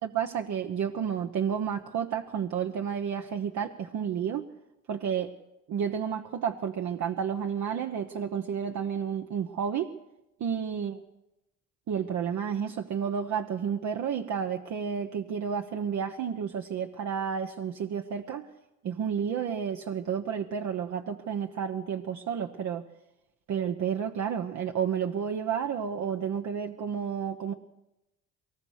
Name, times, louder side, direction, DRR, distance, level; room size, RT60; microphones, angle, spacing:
voice 1, 0.0-4.5 4.9-5.3 5.7-9.9 10.4-11.0 11.9-18.5 18.8-22.9 23.5-27.5, right 7 dB, 70° right, 4 dB, 1.1 m, -31 dB
22.5 x 19.0 x 6.6 m, 0.95 s
cardioid pair, 90°, 30 cm